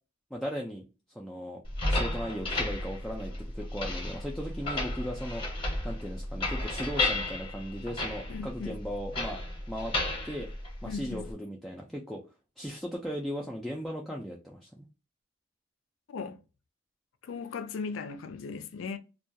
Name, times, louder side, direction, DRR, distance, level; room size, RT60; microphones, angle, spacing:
voice 1, 0.3-0.8 1.1-1.6 1.9-5.4 5.8-9.4 9.7-9.9 10.2-10.5 10.8-12.2 12.6-14.9, equal, ahead, 0.3 m, -37 dB
sound 1, 1.6-11.3, left 2 dB, 25° left, 0.8 m, -33 dB
voice 2, 8.3-8.8 10.9-11.3 16.1-16.4 17.2-19.0, left 5 dB, 80° left, 0.4 m, -37 dB
2.3 x 2.2 x 2.6 m
head